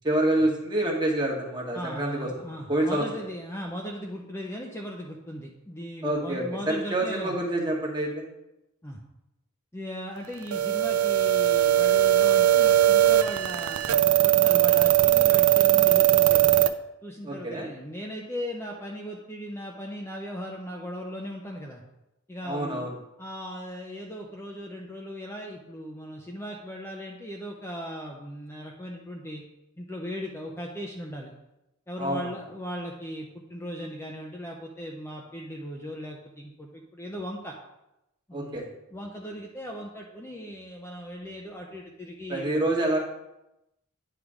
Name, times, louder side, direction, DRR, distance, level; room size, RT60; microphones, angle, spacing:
voice 1, 0.0-2.3 2.7-3.0 6.0-8.2 17.2-17.7 22.4-22.9 32.0-32.3 38.3-38.6 42.3-43.0, right 1 dB, 20° right, -1 dB, 1.2 m, -27 dB
voice 2, 1.7-7.3 8.8-9.0 9.7-16.5 17.0-21.8 22.3-22.9 23.2-29.4 29.8-31.3 31.9-37.6 38.3-38.6 38.9-42.7, equal, 10° left, -1 dB, 0.6 m, -38 dB
sound 1, 10.5-16.7, right 13 dB, 80° right, 0.4 m, -20 dB
9.7 x 3.3 x 4.8 m, 0.90 s
head